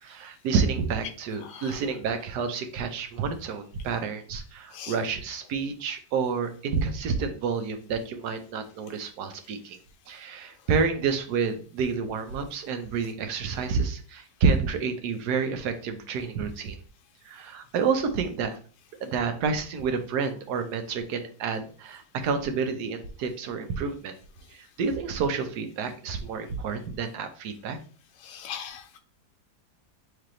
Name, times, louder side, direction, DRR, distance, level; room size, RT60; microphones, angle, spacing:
voice 1, 0.0-9.8 10.1-16.8 17.2-18.6 19.0-24.1 24.5-27.8, right 5 dB, 85° right, 7 dB, 1.3 m, -29 dB
voice 2, 1.4-1.8 4.7-4.9 28.2-29.0, left 8 dB, 90° left, 5 dB, 1.3 m, -40 dB
3.4 x 3.3 x 3.7 m, 0.42 s
omnidirectional pair, 1.7 m